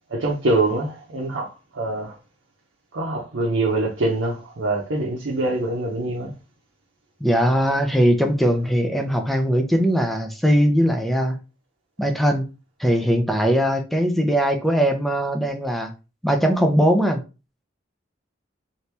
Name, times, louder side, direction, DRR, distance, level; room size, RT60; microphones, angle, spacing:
voice 1, 0.1-2.1 2.9-6.3, right 2 dB, 85° right, 0.7 m, -24 dB
voice 2, 7.2-11.4 12.0-12.5 12.8-15.9 16.2-17.2, equal, ahead, 0.5 m, -20 dB
3.0 x 2.7 x 3.3 m
head